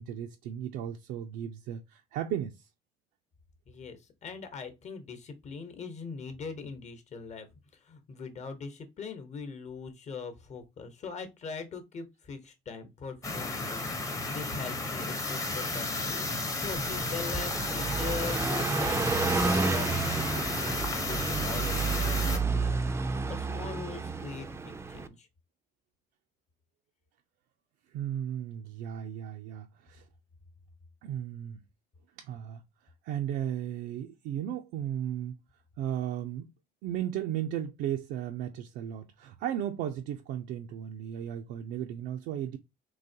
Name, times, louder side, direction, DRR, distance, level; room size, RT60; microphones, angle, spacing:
voice 1, 0.0-2.7 27.9-30.1 31.0-31.6 32.2-32.6 33.0-35.4 35.8-36.5 36.8-42.6, right 10 dB, 90° right, 0.4 m, -35 dB
voice 2, 3.7-25.3, left 5 dB, 45° left, 1.0 m, -42 dB
sound 1, 13.2-22.4, left 2 dB, 20° left, 0.8 m, -33 dB
Car passing by, 16.6-25.1, right 4 dB, 15° right, 0.3 m, -31 dB
3.9 x 2.9 x 2.7 m
cardioid pair, 110°, 17 cm